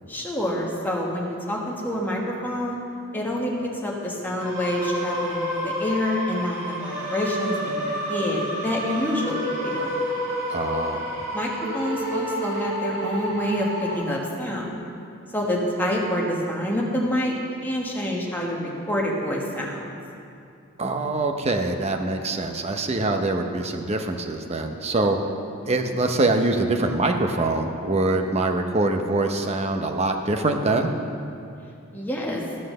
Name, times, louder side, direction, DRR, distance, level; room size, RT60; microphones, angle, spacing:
voice 1, 0.1-2.8 3.1-3.5 3.8-9.9 11.3-14.8 15.3-17.3 17.6-19.9 31.9-32.4, left 1 dB, 10° left, -3 dB, 1.3 m, -27 dB
sound 1, 4.4-14.0, equal, 60° right, 2.9 m, -29 dB
voice 2, 10.5-11.0 20.8-25.2 25.6-30.9, right 2 dB, 30° right, 4 dB, 0.7 m, -24 dB
13.5 x 5.7 x 6.6 m, 2.6 s
head